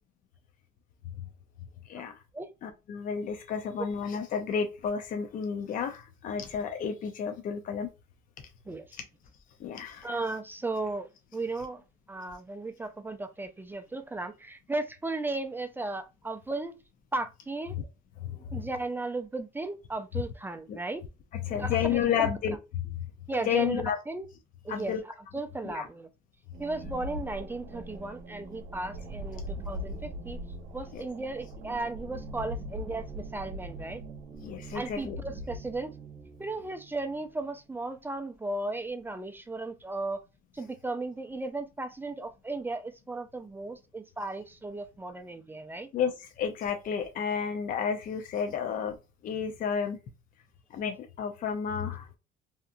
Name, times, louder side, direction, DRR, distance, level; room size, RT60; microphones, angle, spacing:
voice 1, 2.6-7.9 9.6-10.1 18.2-18.7 20.7-20.8 21.5-22.8 23.5-24.0 24.7-25.0 25.6-25.9 30.9-31.0 34.4-35.2 45.9-48.9 49.2-50.0 50.7-52.1, left 7 dB, 55° left, 0.5 m, -31 dB
voice 2, 10.0-16.8 17.1-17.8 18.5-21.0 21.6-22.3 23.3-24.3 24.6-24.9 25.3-26.1 26.6-30.4 30.7-34.0 34.7-35.9 36.4-40.2 40.5-45.9, right 2 dB, 10° right, 0.3 m, -35 dB
sound 1, 26.5-37.5, equal, 90° right, 0.7 m, -41 dB
2.8 x 2.3 x 2.4 m
cardioid pair, 110°, 17 cm